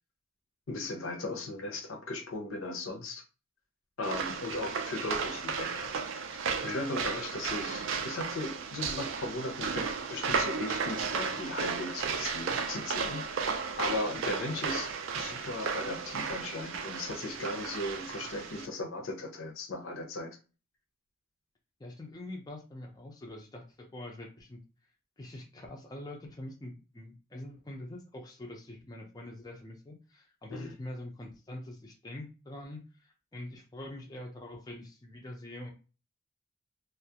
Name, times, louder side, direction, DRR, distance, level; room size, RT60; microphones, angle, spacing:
voice 1, 0.7-3.2 4.0-5.9 6.6-20.4 30.5-30.7, left 2 dB, 70° left, 4 dB, 0.6 m, -37 dB
sound 1, 4.0-18.7, right 5 dB, 65° right, 0.3 m, -34 dB
voice 2, 21.8-24.6 25.2-35.7, left 1 dB, 20° left, 0 dB, 0.4 m, -44 dB
2.3 x 2.0 x 2.7 m, 0.33 s
head